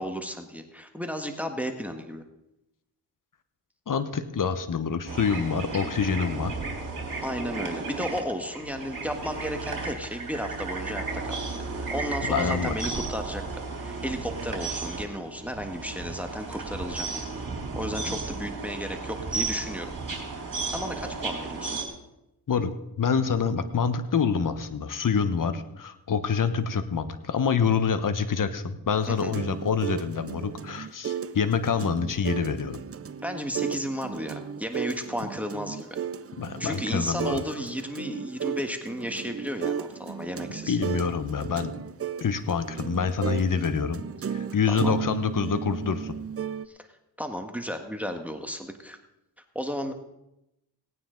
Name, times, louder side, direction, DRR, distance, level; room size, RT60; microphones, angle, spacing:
voice 1, 0.0-2.2 7.2-11.4 11.7-17.4 17.7-19.9 20.4-20.5 20.7-21.8 29.1-29.3 33.2-36.0 36.6-40.8 44.7-44.9 46.7-46.8 47.2-49.0 49.5-49.9, equal, 5° right, 5 dB, 1.5 m, -34 dB
voice 2, 3.9-6.6 12.2-12.7 22.5-32.8 36.4-37.4 40.7-41.7 42.2-44.0 44.3-46.2, left 6 dB, 50° left, 11 dB, 1.2 m, -26 dB
sound 1, 5.1-21.8, right 3 dB, 50° right, 3.4 m, -34 dB
sound 2, 28.9-46.7, right 7 dB, 35° right, 0.6 m, -35 dB
18.5 x 9.3 x 3.9 m, 0.89 s
cardioid pair, 60°, 42 cm